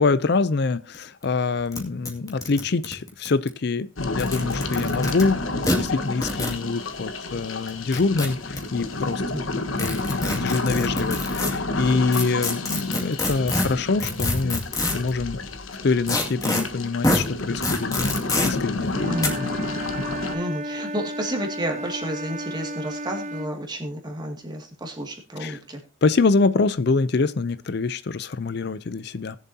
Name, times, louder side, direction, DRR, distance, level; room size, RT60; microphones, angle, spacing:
voice 1, 0.0-9.2 9.8-14.6 14.9-15.4 15.8-18.2 18.4-19.4 25.4-25.6 26.0-29.4, left 4 dB, 55° left, 0.5 m, -25 dB
sound 1, 0.9-1.0 1.2-1.3 1.7-1.8 2.0-3.5 4.1-5.2 5.6-5.8 6.2-6.6 7.7-8.6 9.8-11.5 12.1-15.1 16.1-16.6 17.0-17.2 17.6-18.5 19.2-19.3, left 2 dB, 20° left, 2.2 m, -25 dB
sound 2, 4.0-20.3, left 2 dB, 85° left, 1.4 m, -30 dB
Wind instrument woodwind instrument, 18.9-23.5, equal, 35° right, 0.7 m, -33 dB
voice 2, 20.3-25.8, right 1 dB, 20° right, 2.2 m, -31 dB
20.0 x 7.4 x 2.8 m
head